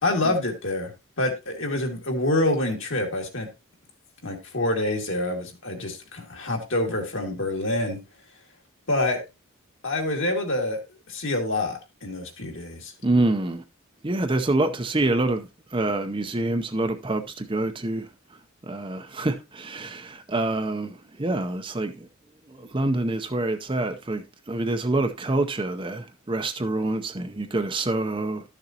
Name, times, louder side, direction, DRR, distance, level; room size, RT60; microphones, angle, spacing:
voice 1, 0.0-0.9 1.2-3.5 4.2-8.0 8.9-9.2 9.8-10.8 11.1-12.9, left 2 dB, 60° left, 2.2 m, -26 dB
voice 2, 13.0-13.6 14.0-18.1 18.7-22.1 22.5-28.4, right 2 dB, 25° right, 0.7 m, -26 dB
12.5 x 6.8 x 2.9 m
head